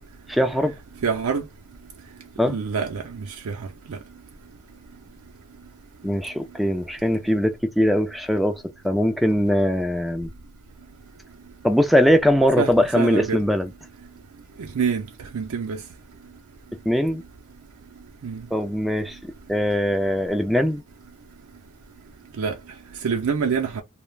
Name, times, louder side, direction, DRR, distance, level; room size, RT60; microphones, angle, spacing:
voice 1, 0.3-0.7 2.4-2.6 6.0-10.3 11.6-13.7 16.9-17.2 18.5-20.8, equal, ahead, 0.3 m, -21 dB
voice 2, 1.0-1.4 2.4-3.6 3.9-4.0 12.6-13.4 14.8-15.0 15.3-15.8 18.2-18.4 22.4-22.5 23.0-23.8, right 6 dB, 70° right, 0.4 m, -26 dB
2.3 x 2.1 x 3.1 m
head